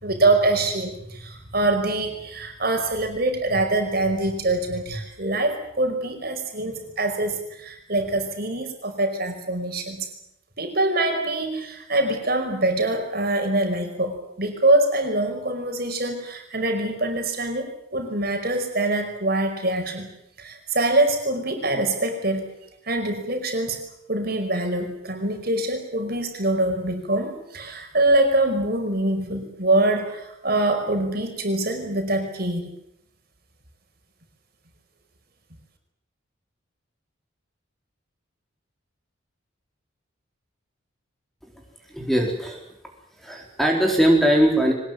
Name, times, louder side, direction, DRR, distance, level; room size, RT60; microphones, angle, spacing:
voice 1, 0.0-10.1 10.6-20.1 20.4-22.5 22.9-23.8 24.1-32.7, right 2 dB, 45° right, 5 dB, 5.2 m, -24 dB
voice 2, 41.9-42.6 43.2-44.7, equal, ahead, 1 dB, 4.3 m, -20 dB
24.0 x 20.0 x 9.4 m, 0.77 s
head